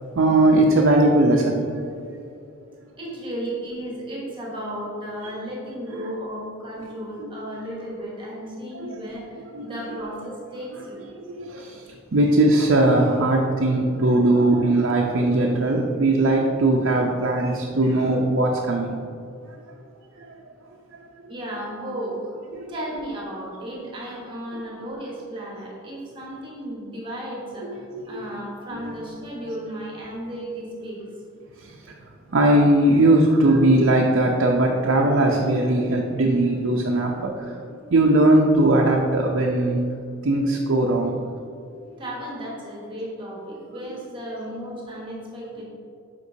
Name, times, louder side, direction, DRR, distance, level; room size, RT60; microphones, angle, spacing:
voice 1, 0.1-1.8 6.0-6.1 7.2-7.3 8.7-8.9 9.5-9.8 11.4-19.0 20.2-20.3 22.5-22.7 24.5-24.6 27.6-28.2 28.7-28.9 29.4-29.5 31.6-31.8 32.3-39.8 40.2-41.2, right 1 dB, 60° right, -1 dB, 0.5 m, -20 dB
voice 2, 3.0-11.1 17.4-17.6 17.8-18.0 21.3-22.3 22.7-31.0 42.0-45.6, right 1 dB, 25° right, -3 dB, 1.1 m, -34 dB
8.0 x 5.2 x 2.7 m, 2.4 s
head